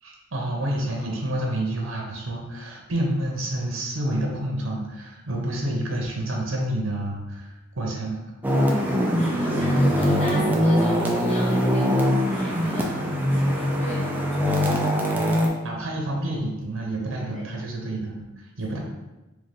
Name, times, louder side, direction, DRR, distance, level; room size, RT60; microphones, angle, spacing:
voice 1, 0.0-8.3 15.2-15.4 15.6-18.8, right 1 dB, 85° right, 0 dB, 0.9 m, -29 dB
sound 1, 8.4-15.5, equal, 10° right, 0.4 m, -22 dB
voice 2, 8.6-15.0 17.3-17.4 18.7-18.8, left 1 dB, 35° left, -6 dB, 0.9 m, -36 dB
3.9 x 3.2 x 3.5 m, 1.0 s
head